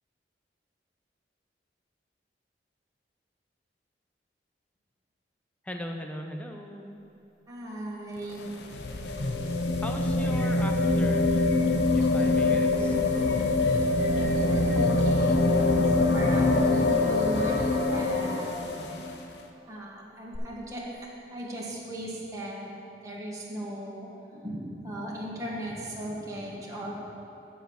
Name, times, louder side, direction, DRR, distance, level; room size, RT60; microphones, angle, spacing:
voice 1, 5.6-7.0 9.8-11.6 12.0-12.9 18.6-19.1, equal, 10° left, 3 dB, 0.6 m, -39 dB
voice 2, 7.5-8.5 12.4-12.7 14.1-18.7 19.7-22.7 23.0-27.0, right 1 dB, 20° right, -5 dB, 1.3 m, -37 dB
sound 1, 8.2-19.1 20.3-20.4, left 2 dB, 70° left, 0.7 m, -24 dB
9.3 x 4.6 x 7.0 m, 2.8 s
head